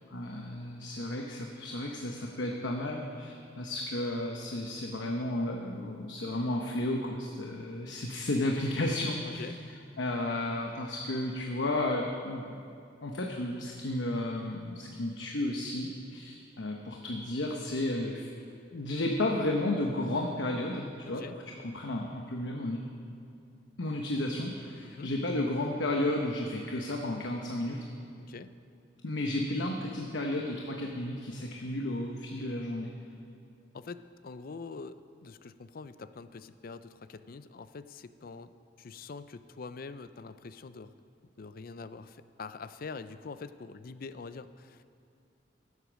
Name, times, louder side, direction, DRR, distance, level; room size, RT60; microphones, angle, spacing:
voice 1, 0.1-9.5 10.0-12.6 13.0-18.3 18.7-22.8 23.8-27.8 29.0-32.9, left 1 dB, 90° left, 1 dB, 1.0 m, -33 dB
voice 2, 9.2-9.6 21.1-21.4 24.8-25.1 28.3-28.5 33.7-38.5 38.8-40.9 41.4-44.9, left 4 dB, 50° left, 13 dB, 0.5 m, -44 dB
15.0 x 8.2 x 6.3 m, 2.6 s
head